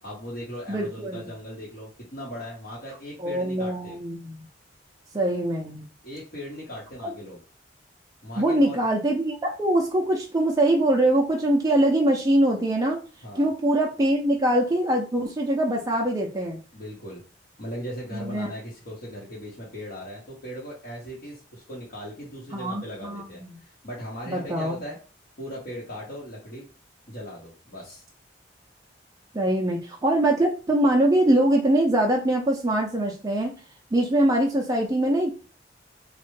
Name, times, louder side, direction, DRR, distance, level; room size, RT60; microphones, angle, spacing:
voice 1, 0.0-4.0 6.0-7.4 8.2-8.8 13.2-13.5 16.7-17.2 17.6-25.0 25.4-26.7 27.1-28.0, equal, 55° left, -7 dB, 0.9 m, -38 dB
voice 2, 0.7-1.3 3.2-4.5 5.1-5.9 7.0-7.1 8.4-13.0 13.4-16.6 18.1-18.5 22.5-23.6 24.3-24.8 29.3-33.5 33.9-35.3, right 1 dB, 20° right, -1 dB, 0.4 m, -23 dB
3.2 x 2.1 x 3.1 m, 0.36 s
head